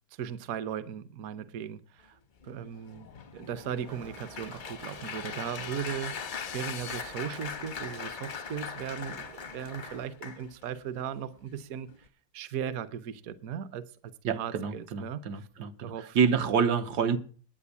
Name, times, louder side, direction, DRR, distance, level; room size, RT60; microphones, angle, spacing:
voice 1, 0.1-2.2 2.4-11.9 12.3-15.5 15.8-16.2, right 8 dB, 60° right, 1.1 m, -37 dB
Applause, 2.4-10.7 11.4-11.6 11.9-12.1, left 6 dB, 50° left, 0.6 m, -41 dB
sound 1, 3.8-10.1, right 3 dB, 40° right, 0.5 m, -51 dB
sound 2, 4.2-7.0, left 11 dB, 80° left, 1.3 m, -46 dB
voice 2, 14.2-17.2, right 6 dB, 80° right, 1.5 m, -27 dB
10.0 x 8.6 x 8.2 m
omnidirectional pair, 1.8 m